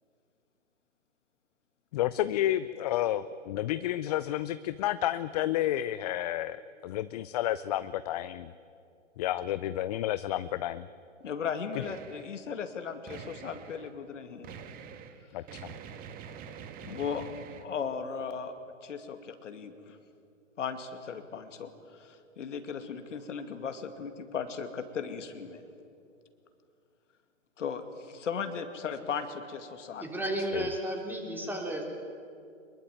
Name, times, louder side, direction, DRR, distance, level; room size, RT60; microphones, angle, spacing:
voice 1, 1.9-8.5 9.2-10.9 15.3-15.8 30.5-30.6, left 13 dB, 30° left, 14 dB, 0.5 m, -31 dB
voice 2, 11.2-14.6 16.2-16.3 16.8-17.3 17.6-18.5 18.8-20.0 20.6-25.6 27.6-30.1, left 6 dB, 70° left, 7 dB, 2.5 m, -37 dB
sound 1, 11.8-12.4 13.1-13.9 14.4-17.6, right 7 dB, 25° right, 1.5 m, -45 dB
voice 3, 30.0-31.8, right 1 dB, 5° right, 1 dB, 3.5 m, -33 dB
24.0 x 22.0 x 9.4 m, 2.5 s
hypercardioid pair, 130°, 38 cm